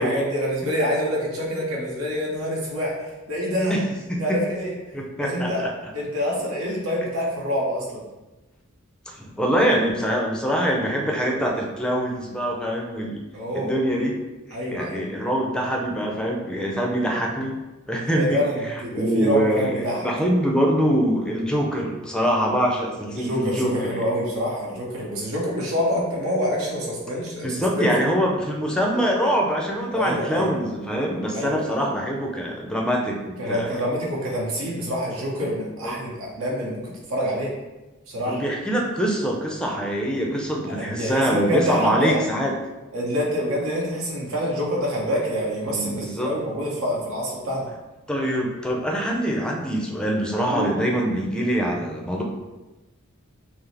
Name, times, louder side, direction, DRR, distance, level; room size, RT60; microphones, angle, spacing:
voice 1, 0.0-2.9 3.3-3.7 4.2-4.8 5.2-5.6 5.9-8.0 13.3-13.7 14.5-15.1 18.1-20.1 23.1-27.5 27.8-27.9 29.9-30.5 31.3-31.9 33.4-36.8 37.1-37.5 38.1-38.4 40.7-42.2 42.9-47.7 50.5-50.8, equal, 75° right, -4 dB, 1.2 m, -26 dB
voice 2, 4.9-5.7 9.1-13.2 13.5-14.2 14.7-17.6 17.9-23.9 27.4-33.7 35.8-35.9 38.3-42.5 45.6-46.3 48.1-52.2, equal, 5° left, -1 dB, 0.5 m, -24 dB
5.7 x 2.0 x 3.3 m, 1.1 s
head